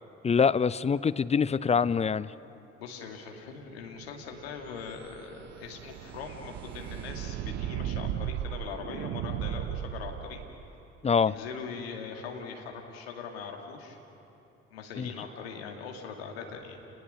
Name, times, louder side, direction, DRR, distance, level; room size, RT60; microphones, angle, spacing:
voice 1, 0.2-2.3 11.0-11.3 15.0-15.1, left 6 dB, 20° left, 17 dB, 0.6 m, -24 dB
voice 2, 2.8-10.4 11.2-14.0 14.7-16.8, left 6 dB, 80° left, 2 dB, 2.2 m, -41 dB
sound 1, 4.3-10.6, right 10 dB, 65° right, 1.0 m, -36 dB
29.5 x 19.5 x 6.3 m, 2.9 s
figure-of-eight pair, 50°, 30 cm